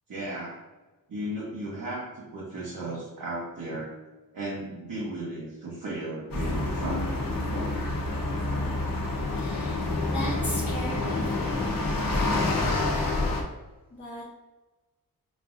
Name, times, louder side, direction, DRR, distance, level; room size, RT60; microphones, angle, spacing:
voice 1, 0.1-0.6 1.1-3.9 4.3-7.7, right 1 dB, 65° right, -6 dB, 0.9 m, -35 dB
sound 1, 6.3-13.4, left 2 dB, 70° left, 0.8 m, -28 dB
voice 2, 9.3-13.1 13.9-14.3, left 1 dB, 20° left, -5 dB, 0.6 m, -38 dB
5.2 x 2.5 x 2.5 m, 1.2 s
wide cardioid pair, 175°, 35 cm